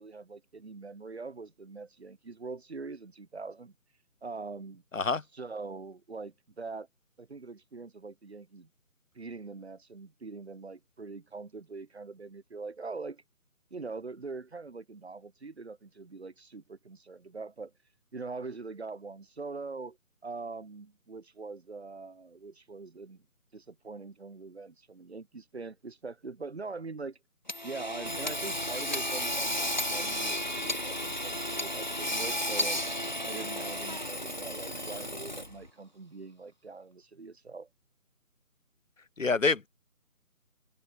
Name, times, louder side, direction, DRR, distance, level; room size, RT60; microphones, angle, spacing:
voice 1, 0.0-3.7 4.2-4.8 5.4-6.9 7.2-8.7 9.1-13.2 13.7-17.7 18.1-20.0 20.2-23.2 23.5-27.2 27.6-32.8 33.2-37.7, right 4 dB, 45° right, 6.3 m, -43 dB
voice 2, 4.9-5.2 39.2-39.7, left 4 dB, 60° left, 1.2 m, -26 dB
Hammer / Sawing, 27.5-35.7, left 1 dB, 30° left, 0.8 m, -33 dB
figure-of-eight pair, 170°, 44 cm